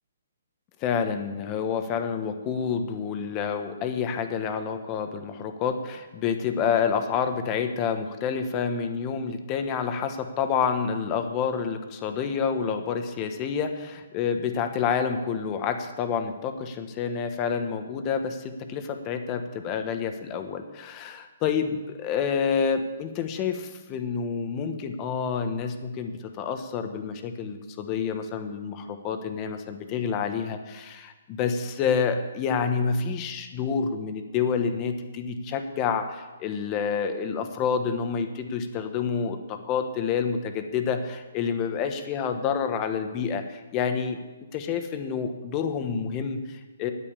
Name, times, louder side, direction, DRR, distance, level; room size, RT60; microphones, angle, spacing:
voice 1, 0.8-44.2 44.5-46.9, left 6 dB, 25° left, 7 dB, 1.3 m, -28 dB
9.1 x 8.9 x 8.7 m, 1.2 s
hypercardioid pair, 150°, 0 cm